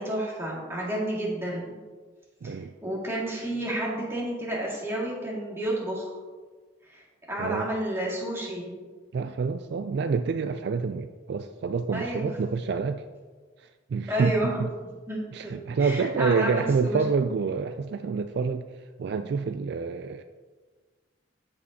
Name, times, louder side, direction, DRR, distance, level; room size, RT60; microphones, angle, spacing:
voice 1, 0.0-1.8 2.4-2.5 2.8-6.1 6.9-7.0 7.3-8.8 11.9-12.3 14.1-15.5 15.8-17.0, right 1 dB, 15° right, -5 dB, 2.0 m, -31 dB
voice 2, 2.4-2.7 7.4-7.7 9.1-13.0 13.6-14.7 15.3-18.7 19.0-20.2, right 5 dB, 60° right, 9 dB, 0.3 m, -27 dB
14.0 x 5.3 x 2.8 m, 1.4 s
head